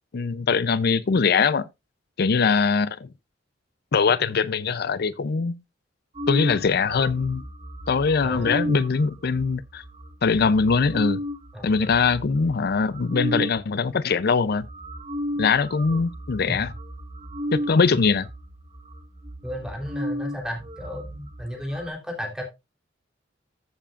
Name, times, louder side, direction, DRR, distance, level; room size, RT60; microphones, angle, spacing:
voice 1, 0.1-1.7 2.2-3.1 3.9-5.6 6.3-7.4 7.9-9.8 10.2-11.2 11.6-14.7 15.4-16.7 17.5-18.3, left 5 dB, 55° left, 0.5 m, -22 dB
sound 1, 6.2-13.6 14.2-14.3 14.5-21.9, equal, 30° right, 1.4 m, -34 dB
voice 2, 8.2-8.7 11.5-11.9 16.5-16.6 17.9-18.1 19.4-22.4, equal, 5° right, 3.4 m, -34 dB
14.0 x 7.5 x 2.4 m
head